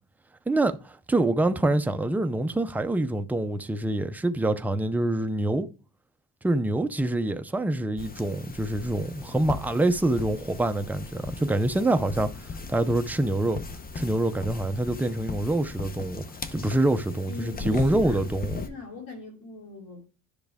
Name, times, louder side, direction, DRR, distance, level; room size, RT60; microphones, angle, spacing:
voice 1, 0.5-5.7 6.4-13.6 13.9-16.2 16.5-18.6, right 1 dB, 5° right, 0.5 m, -26 dB
sound 1, 8.0-18.7, left 4 dB, 25° left, 0.7 m, -38 dB
voice 2, 17.3-18.3 18.5-20.0, left 3 dB, 70° left, 2.9 m, -41 dB
10.5 x 6.0 x 3.5 m
cardioid pair, 135°, 35 cm